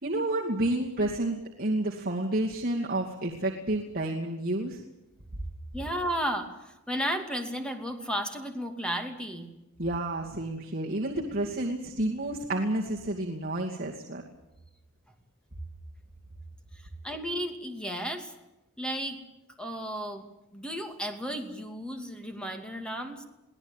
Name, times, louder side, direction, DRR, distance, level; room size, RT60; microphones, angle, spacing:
voice 1, 0.0-4.8 9.8-14.2, right 1 dB, 45° right, -1 dB, 2.4 m, -30 dB
voice 2, 5.7-9.5 16.7-18.3 18.8-19.2 19.6-23.2, equal, 5° left, 6 dB, 2.6 m, -34 dB
23.0 x 17.0 x 9.1 m, 0.95 s
head